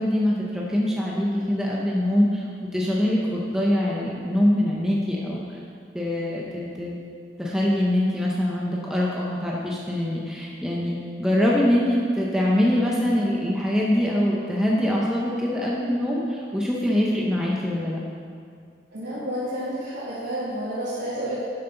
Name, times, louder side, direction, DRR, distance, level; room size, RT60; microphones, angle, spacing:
voice 1, 0.0-2.4 2.7-5.6 5.9-7.0 7.4-18.0, left 1 dB, 5° right, -4 dB, 0.9 m, -23 dB
voice 2, 18.9-21.5, right 1 dB, 90° right, -11 dB, 2.7 m, -30 dB
11.5 x 7.7 x 4.0 m, 2.3 s
head